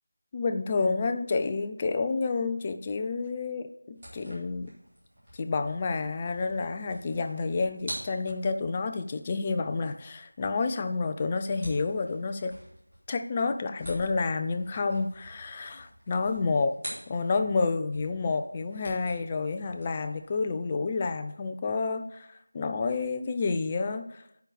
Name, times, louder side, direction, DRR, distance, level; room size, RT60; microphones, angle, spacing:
voice 1, 0.3-4.7 5.3-12.5 13.1-16.8 17.1-24.2, left 4 dB, 15° left, 7 dB, 0.4 m, -29 dB
sound 1, 3.9-17.6 17.9-20.4, equal, 20° right, 4.5 m, -47 dB
8.9 x 5.7 x 6.9 m, 0.76 s
figure-of-eight pair, 175°, 0 cm